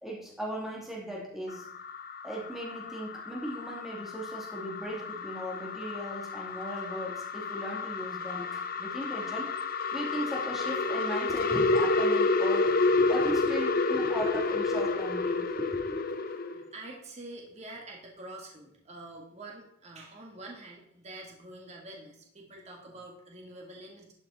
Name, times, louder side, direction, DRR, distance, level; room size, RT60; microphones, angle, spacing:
voice 1, 0.0-1.6 2.2-9.5 9.9-16.0, equal, ahead, -4 dB, 2.6 m, -37 dB
sound 1, 1.5-16.6, left 3 dB, 50° left, 0.8 m, -30 dB
voice 2, 16.3-24.1, right 2 dB, 35° right, -1 dB, 2.1 m, -46 dB
12.0 x 6.4 x 4.3 m, 0.68 s
head